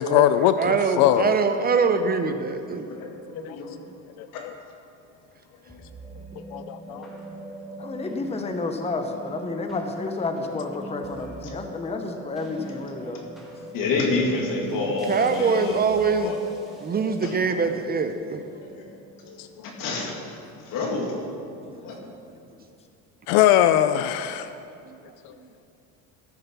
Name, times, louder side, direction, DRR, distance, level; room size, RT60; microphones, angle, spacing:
voice 1, 0.0-1.4 3.0-3.6 4.2-4.5 6.5-7.1 17.2-17.4 19.4-19.7 23.3-24.5 25.2-25.4, left 12 dB, 85° left, 11 dB, 0.5 m, -22 dB
voice 2, 0.6-2.9 14.7-14.8 15.1-16.3 16.8-18.4 24.9-25.5, right 5 dB, 25° right, 8 dB, 0.5 m, -24 dB
voice 3, 2.9-3.8 4.3-4.4 5.6-5.8 6.9-7.0 11.4-11.5 12.6-12.7 13.0-13.1 13.7-15.8 16.2-16.4 16.7-16.8 17.2-17.3 18.6-18.9 19.3-21.3 21.8-22.0, left 3 dB, 65° left, 0 dB, 2.3 m, -29 dB
sound 1, 5.7-20.1, right 2 dB, ahead, 1.9 m, -41 dB
voice 4, 7.8-13.3, left 3 dB, 15° left, 5 dB, 0.8 m, -31 dB
14.0 x 6.6 x 5.9 m, 2.6 s
cardioid pair, 130°, 35 cm